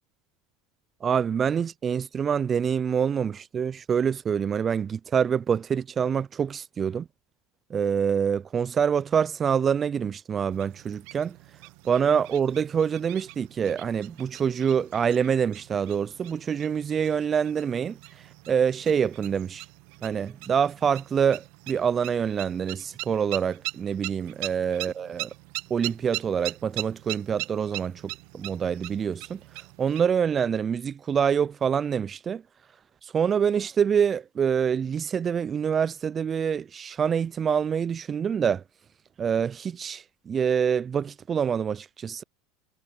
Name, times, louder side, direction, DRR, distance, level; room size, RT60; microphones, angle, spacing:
voice 1, 1.0-7.1 7.7-11.3 11.8-18.0 18.5-19.6 20.0-25.3 25.7-29.4 29.8-32.4 33.0-38.6 39.2-42.2, right 7 dB, 30° right, 0.5 m, -26 dB
sound 1, 10.5-30.0, right 28 dB, 60° right, 1.0 m, -41 dB
hypercardioid pair, 85°, 0 cm